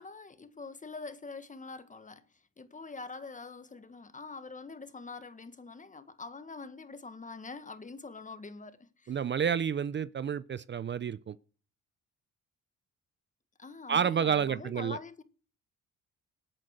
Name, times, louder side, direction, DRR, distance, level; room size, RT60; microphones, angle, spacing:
voice 1, 0.0-9.2 13.6-15.2, left 4 dB, 25° left, 1.5 m, -45 dB
voice 2, 9.1-11.4 13.9-15.0, right 7 dB, 40° right, 0.6 m, -30 dB
18.5 x 8.8 x 6.6 m
cardioid pair, 90°, 30 cm